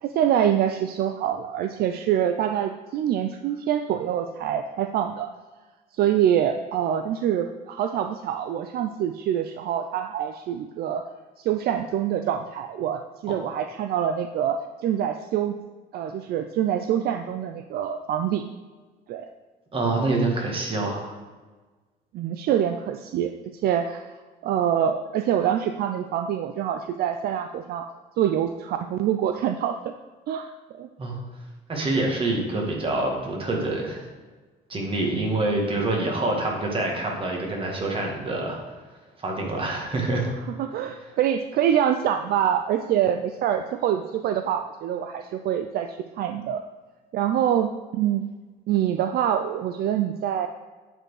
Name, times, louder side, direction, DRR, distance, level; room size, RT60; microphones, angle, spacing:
voice 1, 0.0-5.3 6.0-11.0 11.4-15.6 15.9-18.4 19.1-19.3 22.1-23.3 23.6-24.1 24.4-27.9 28.2-29.9 30.3-30.5 30.8-30.9 35.1-35.4 40.6-46.6 47.1-48.2 48.7-50.5, right 10 dB, 65° right, 7 dB, 0.5 m, -25 dB
voice 2, 19.7-21.2 31.0-31.2 31.7-34.0 34.7-38.6 39.2-40.3, right 2 dB, 30° right, 0 dB, 2.1 m, -26 dB
8.9 x 4.4 x 4.9 m, 1.3 s
cardioid pair, 110°, 17 cm